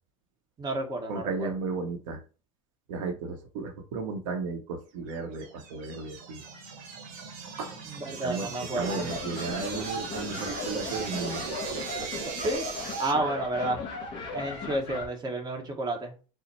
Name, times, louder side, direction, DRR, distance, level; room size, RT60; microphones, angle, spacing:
voice 1, 0.6-1.5 8.1-9.0 12.4-12.7 13.0-13.8 14.3-16.1, right 1 dB, 20° right, 2 dB, 1.1 m, -30 dB
voice 2, 1.1-2.2 2.9-6.4 7.6-7.8 8.2-8.5 8.7-11.4, right 4 dB, 70° right, 4 dB, 0.8 m, -34 dB
sound 1, 5.1-13.1, right 5 dB, 45° right, 1.1 m, -38 dB
sound 2, 8.7-15.1, left 3 dB, 30° left, 1.7 m, -36 dB
4.1 x 2.1 x 4.1 m, 0.35 s
hypercardioid pair, 115°, 18 cm